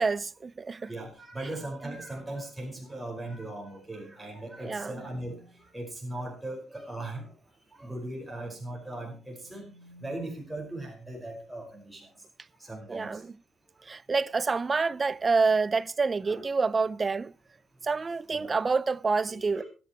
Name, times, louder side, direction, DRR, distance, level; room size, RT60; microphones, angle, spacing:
voice 1, 0.0-0.9 1.8-2.0 4.6-5.0 12.9-13.3 13.8-17.3 17.8-19.6, right 4 dB, 30° right, 0.5 m, -27 dB
voice 2, 0.8-7.3 7.7-9.7 10.0-12.1 12.6-13.2 16.3-16.5 18.3-18.5 19.3-19.6, right 1 dB, 10° right, 5.3 m, -39 dB
sound 1, 3.6-5.7 8.7-10.3, equal, 85° left, 2.1 m, -55 dB
24.0 x 9.4 x 3.1 m
cardioid pair, 90°, 0 cm